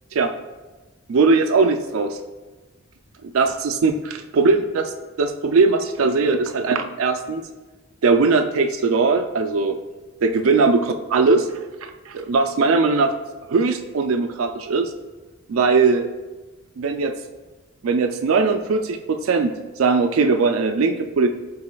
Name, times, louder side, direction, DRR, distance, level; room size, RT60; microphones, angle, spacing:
voice 1, 1.1-2.2 3.3-4.9 5.2-7.4 8.0-9.8 10.2-11.5 11.8-13.1 13.5-14.9 15.5-16.1 16.8-17.1 17.8-21.3, right 4 dB, 75° right, 5 dB, 0.4 m, -20 dB
11.5 x 4.1 x 2.3 m, 1.2 s
head